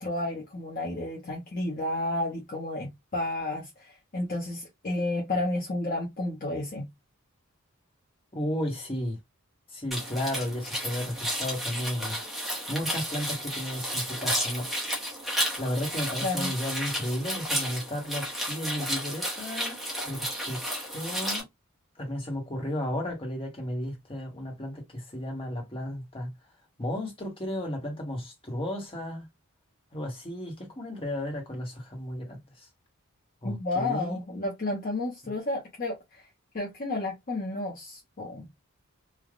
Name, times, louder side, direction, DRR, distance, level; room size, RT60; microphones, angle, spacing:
voice 1, 0.0-6.9 16.2-16.5 33.4-36.2 36.5-38.5, left 2 dB, 40° left, 0.8 m, -31 dB
voice 2, 8.3-9.2 9.7-12.2 12.7-14.7 15.6-19.8 20.0-20.6 20.9-21.5 22.0-26.3 26.8-29.3 29.9-32.7 33.4-34.2 35.2-35.3, left 1 dB, 25° left, 1.2 m, -33 dB
sound 1, 9.9-21.4, equal, ahead, 0.9 m, -32 dB
3.3 x 2.4 x 2.4 m
head